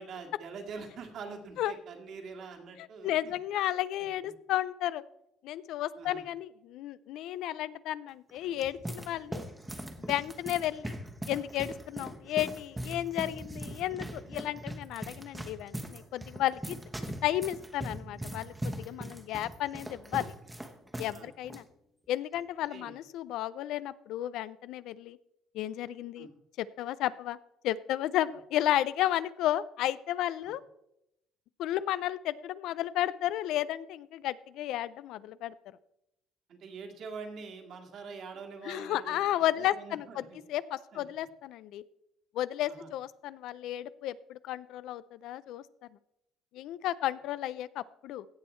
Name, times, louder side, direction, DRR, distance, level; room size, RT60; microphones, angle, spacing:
voice 1, 0.0-3.3 4.2-4.3 5.9-6.2 21.1-21.3 22.7-22.9 26.2-26.3 30.4-30.5 36.5-39.3 39.6-40.4 40.9-41.0 42.6-42.9, right 5 dB, 55° right, 3 dB, 2.0 m, -44 dB
voice 2, 3.0-5.0 5.4-9.4 10.0-10.9 11.3-16.8 17.2-20.3 21.0-21.6 22.1-25.2 25.5-26.3 26.6-27.4 27.6-30.6 31.6-35.5 38.6-41.8 42.3-45.6 46.5-48.3, left 13 dB, 75° left, 17 dB, 0.4 m, -33 dB
sound 1, 8.3-21.2 21.4-21.6 22.3-22.6, right 1 dB, 10° right, 1.1 m, -41 dB
16.5 x 6.3 x 4.4 m, 0.83 s
cardioid pair, 120°, 0 cm